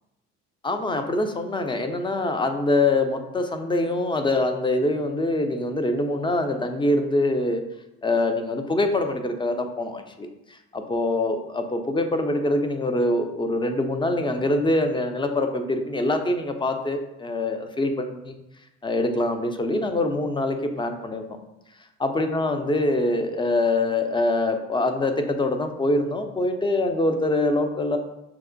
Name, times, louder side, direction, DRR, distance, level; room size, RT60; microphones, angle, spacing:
voice 1, 0.6-7.6 8.0-10.3 10.7-18.3 18.8-21.4 22.0-28.0, left 2 dB, 15° left, 6 dB, 0.5 m, -24 dB
5.7 x 2.1 x 2.5 m, 0.89 s
hypercardioid pair, 65°, 33 cm